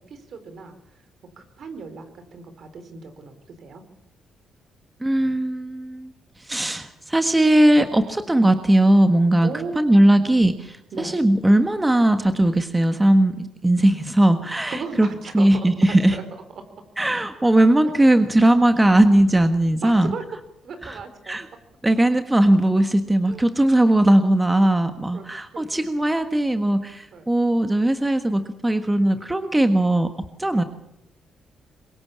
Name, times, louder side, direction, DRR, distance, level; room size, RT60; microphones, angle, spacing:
voice 1, 0.1-0.8 1.4-3.8 9.4-10.0 10.9-11.2 14.7-15.9 16.1-16.2 17.4-17.6 17.8-18.2 19.8-20.2 20.6-21.4 23.2-23.4 25.1-25.2 25.5-25.6 27.1-27.2 30.5-30.7, right 4 dB, 60° right, 9 dB, 4.4 m, -36 dB
voice 2, 5.0-6.1 6.4-9.5 9.7-15.1 15.3-16.2 17.0-20.1 20.8-21.0 21.3-21.5 21.8-30.1 30.4-30.6, right 1 dB, 15° right, 8 dB, 1.5 m, -19 dB
23.5 x 21.5 x 8.6 m, 0.83 s
cardioid pair, 90°, 0 cm